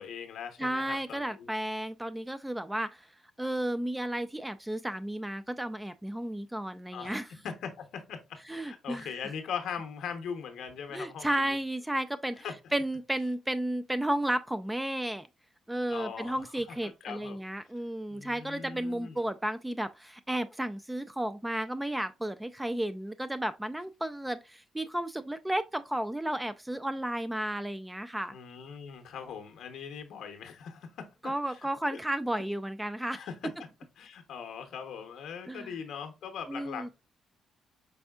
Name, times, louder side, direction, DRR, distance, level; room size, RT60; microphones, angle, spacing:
voice 1, 0.0-1.5 6.9-11.6 12.4-12.5 15.9-17.4 18.1-19.3 28.3-32.0 33.1-33.7 34.0-36.9, left 7 dB, 75° left, 0.8 m, -41 dB
voice 2, 0.6-3.1 3.4-7.3 8.5-9.1 10.9-12.5 12.7-15.3 15.7-28.4 31.2-33.2 35.5-35.7 36.5-36.9, right 1 dB, 10° right, 0.3 m, -33 dB
5.4 x 3.5 x 2.3 m
cardioid pair, 90°, 0 cm